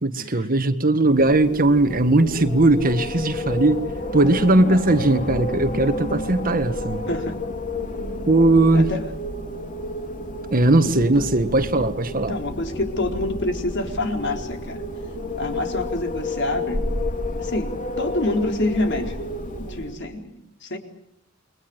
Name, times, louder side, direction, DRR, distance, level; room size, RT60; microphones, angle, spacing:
voice 1, 0.0-3.8 4.1-7.0 8.3-8.9 10.5-12.4, right 2 dB, 45° right, 1.7 m, -19 dB
Wind, 1.0-20.1, left 1 dB, 40° left, 3.6 m, -30 dB
voice 2, 4.5-4.8 7.1-7.4 8.7-9.1 11.0-11.4 11.8-11.9 12.3-14.8 15.4-16.8 17.4-19.2 19.6-20.8, left 1 dB, 55° left, 4.2 m, -27 dB
29.0 x 23.0 x 8.0 m
head